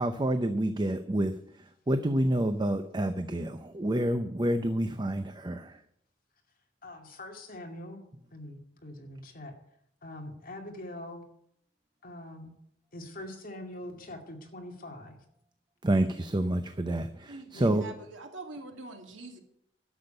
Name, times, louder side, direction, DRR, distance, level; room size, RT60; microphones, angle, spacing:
voice 1, 0.0-5.8 15.8-17.8, right 1 dB, 25° right, 8 dB, 0.7 m, -28 dB
voice 2, 6.8-8.0 8.3-9.6 10.0-11.3 12.0-12.5 12.9-15.2 17.5-18.0, left 1 dB, 50° left, 2 dB, 2.4 m, -43 dB
voice 3, 17.3-19.4, right 3 dB, 85° right, 3 dB, 2.4 m, -44 dB
12.0 x 7.2 x 8.9 m, 0.71 s
head